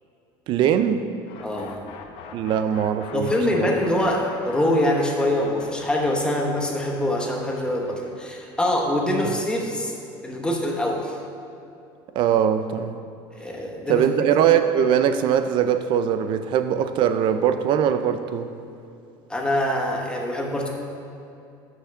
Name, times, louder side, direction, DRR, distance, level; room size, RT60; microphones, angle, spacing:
voice 1, 0.5-1.0 2.3-3.3 3.6-3.7 12.1-13.0 13.9-18.5, right 9 dB, 50° right, 10 dB, 0.5 m, -21 dB
sound 1, 1.3-11.1, left 6 dB, 55° left, 0.8 m, -45 dB
voice 2, 1.4-1.8 3.1-10.0 10.2-11.2 13.4-14.1 19.3-20.7, left 1 dB, 10° left, 0 dB, 1.0 m, -24 dB
6.2 x 5.9 x 6.7 m, 2.6 s
cardioid pair, 135°, 11 cm